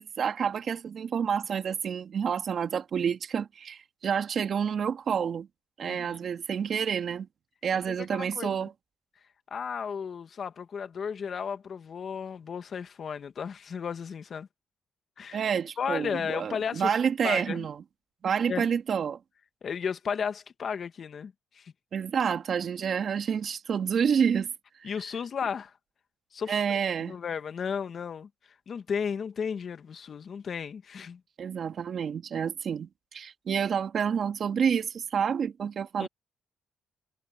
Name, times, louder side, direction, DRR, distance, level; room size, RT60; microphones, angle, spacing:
voice 1, 0.0-5.5 5.8-7.3 7.6-8.7 15.3-17.8 18.2-19.2 21.9-24.5 24.8-24.9 26.5-27.2 31.4-36.1, right 7 dB, 55° right, 2.2 m, -29 dB
voice 2, 5.8-6.2 7.9-8.6 9.5-14.5 15.2-15.4 15.8-16.9 17.2-17.7 18.5-18.7 19.6-21.7 24.8-25.7 26.3-26.6 27.1-28.3 28.7-31.2 36.0-36.1, left 6 dB, 50° left, 1.7 m, -34 dB
cardioid pair, 90°, 0 cm